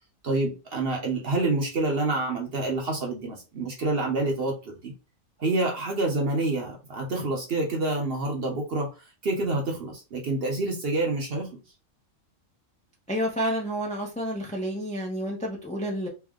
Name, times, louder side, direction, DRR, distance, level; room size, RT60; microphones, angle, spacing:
voice 1, 0.2-4.9 5.4-8.9 9.2-11.5, right 2 dB, 50° right, 0.8 m, -27 dB
voice 2, 13.1-16.1, equal, 10° left, 0.4 m, -29 dB
3.3 x 2.1 x 3.5 m
omnidirectional pair, 1.5 m